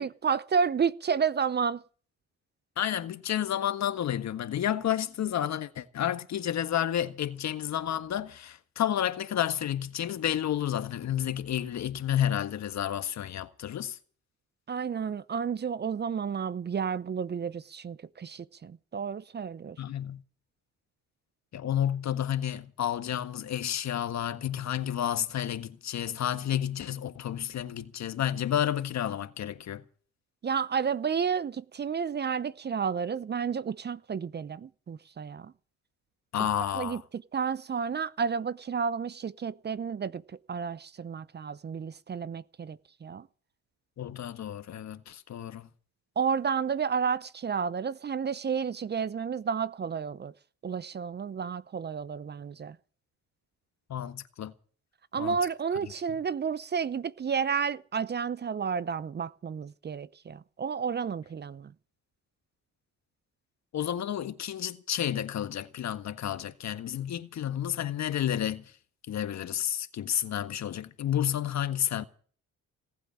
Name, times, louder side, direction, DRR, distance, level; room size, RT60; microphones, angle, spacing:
voice 1, 0.0-1.8 14.7-19.8 30.4-35.5 36.7-40.2 40.5-43.2 46.2-50.3 50.6-52.8 55.1-61.7, right 6 dB, 35° right, 0.7 m, -31 dB
voice 2, 2.8-14.0 19.8-20.2 21.5-29.8 36.3-37.0 44.0-45.7 53.9-54.5 55.2-55.4 63.7-68.6 69.1-72.0, left 10 dB, 65° left, 1.6 m, -31 dB
18.5 x 8.6 x 8.6 m
cardioid pair, 90°, 30 cm